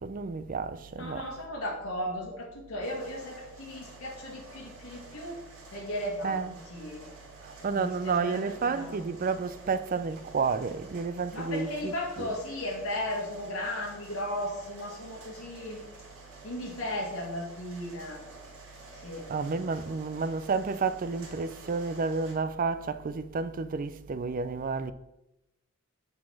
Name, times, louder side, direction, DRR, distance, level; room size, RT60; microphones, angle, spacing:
voice 1, 0.0-1.3 6.2-6.5 7.4-11.7 12.2-12.3 19.3-24.9, right 4 dB, 40° right, 0.4 m, -31 dB
voice 2, 1.0-5.4 5.7-7.0 7.7-9.0 11.3-15.8 16.4-18.2 18.9-19.6, left 1 dB, 85° left, 1.9 m, -36 dB
sound 1, 2.8-22.3, right 2 dB, 70° right, 2.3 m, -50 dB
7.4 x 4.0 x 5.8 m
head